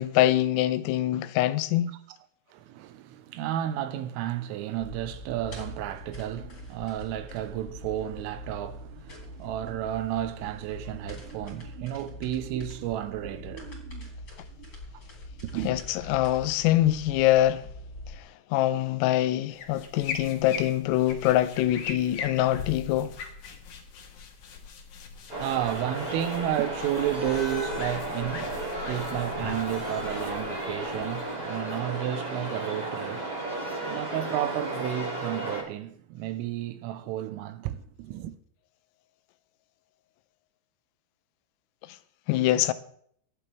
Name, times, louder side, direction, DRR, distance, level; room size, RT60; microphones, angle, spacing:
voice 1, 0.0-1.9 15.7-17.7 18.5-23.1 42.3-42.7, left 14 dB, 90° left, 3.4 m, -24 dB
voice 2, 2.5-14.1 14.6-14.7 15.4-15.8 25.4-38.4, right 12 dB, 90° right, 3.5 m, -32 dB
sound 1, 4.8-18.2, left 1 dB, 20° left, 3.1 m, -43 dB
sound 2, 19.5-31.5, left 5 dB, 65° left, 1.9 m, -41 dB
sound 3, 25.3-35.6, right 1 dB, 20° right, 1.2 m, -34 dB
24.0 x 8.4 x 3.4 m
omnidirectional pair, 5.8 m